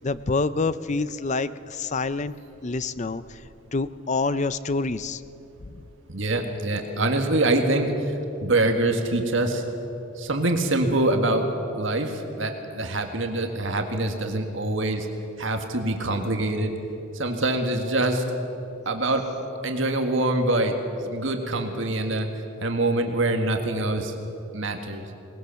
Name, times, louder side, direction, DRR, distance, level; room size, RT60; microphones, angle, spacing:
voice 1, 0.0-2.3 2.6-3.2 3.7-5.2, left 3 dB, 35° left, 15 dB, 0.5 m, -26 dB
voice 2, 6.1-8.2 8.4-9.6 10.2-11.5 11.8-15.1 15.4-16.7 17.1-18.2 18.9-19.3 19.6-20.8 21.0-22.3 22.6-24.2 24.5-25.0, right 2 dB, 60° right, 4 dB, 1.7 m, -24 dB
22.5 x 19.5 x 7.0 m, 2.9 s
head